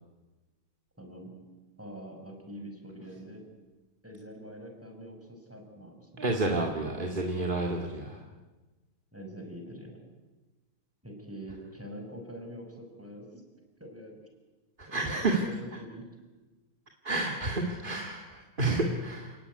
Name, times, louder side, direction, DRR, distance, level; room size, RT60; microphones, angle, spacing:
voice 1, 1.0-1.4 1.8-3.4 4.0-6.3 9.1-10.0 11.0-13.4 13.8-14.3 14.9-16.1, equal, 5° right, 3 dB, 5.3 m, -45 dB
voice 2, 6.2-8.2 14.8-15.4 17.0-19.3, right 2 dB, 25° right, 2 dB, 2.1 m, -30 dB
29.0 x 18.0 x 9.7 m, 1.2 s
omnidirectional pair, 2.4 m